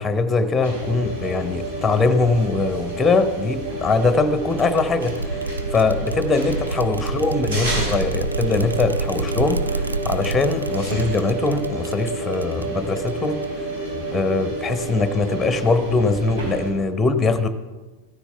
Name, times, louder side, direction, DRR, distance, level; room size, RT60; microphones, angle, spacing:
voice 1, 0.0-13.7 14.1-17.5, left 3 dB, 10° left, 11 dB, 1.0 m, -22 dB
sound 1, 0.6-16.7, right 2 dB, 60° right, 4.1 m, -29 dB
sound 2, 4.5-13.7, right 3 dB, 80° right, 0.3 m, -29 dB
16.0 x 13.5 x 3.4 m, 1.2 s
figure-of-eight pair, 90°, 0 cm